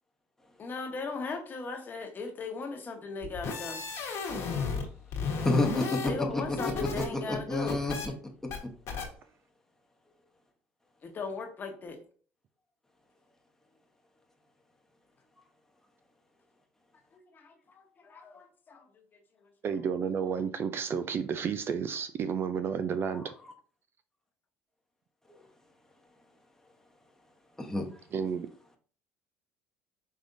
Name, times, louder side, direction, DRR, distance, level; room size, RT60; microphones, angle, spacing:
voice 1, 0.6-3.8 5.9-7.8 11.0-12.0 17.1-18.9 19.4-19.5, left 4 dB, 35° left, 1.1 m, -38 dB
sound 1, 3.2-4.9 5.1-7.1 7.4-8.1 8.5-8.6 8.9-9.1, left 5 dB, 55° left, 1.3 m, -33 dB
voice 2, 5.4-6.0 6.3-8.1 23.2-23.3 27.6-28.0, left 2 dB, 10° left, 1.0 m, -30 dB
voice 3, 19.6-23.3 28.1-28.5, right 7 dB, 45° right, 0.4 m, -31 dB
5.3 x 3.4 x 2.6 m
supercardioid pair, 85°, 6 cm